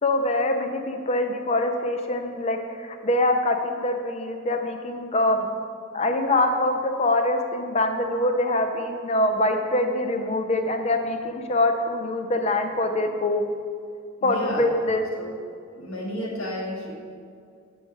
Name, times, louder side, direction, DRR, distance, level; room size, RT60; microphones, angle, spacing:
voice 1, 0.0-5.5 5.9-13.4 14.2-15.0, left 1 dB, 30° left, 5 dB, 0.4 m, -24 dB
voice 2, 14.2-14.7 15.2-15.3 15.8-16.9, left 1 dB, 75° left, -3 dB, 1.3 m, -32 dB
7.3 x 3.9 x 4.8 m, 2.3 s
head